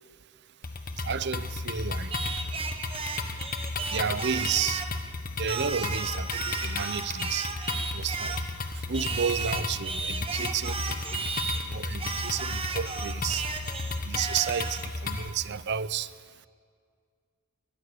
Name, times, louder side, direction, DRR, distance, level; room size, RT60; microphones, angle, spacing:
sound 1, 0.6-15.3, left 3 dB, 45° left, 1.4 m, -34 dB
voice 1, 1.0-2.4 3.9-4.9 5.4-7.5 7.9-8.4 8.7-11.3 11.7-13.5 14.0-16.1, right 7 dB, 55° right, 0.6 m, -32 dB
Singing, 2.1-5.0 5.5-8.5 8.9-11.6 12.0-14.9, right 4 dB, 25° right, 1.4 m, -34 dB
22.5 x 22.0 x 6.7 m
head